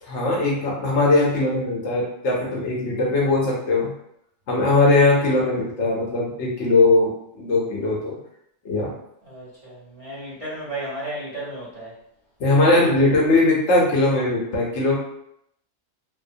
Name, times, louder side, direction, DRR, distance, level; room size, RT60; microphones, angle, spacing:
voice 1, 0.0-3.9 4.5-7.1 7.3-8.2 8.6-8.9 12.4-15.0, left 2 dB, 65° left, -3 dB, 1.1 m, -20 dB
voice 2, 5.0-5.5 9.2-11.9 12.7-13.4, right 1 dB, 30° right, -9 dB, 0.9 m, -34 dB
2.7 x 2.1 x 2.6 m, 0.76 s
omnidirectional pair, 1.3 m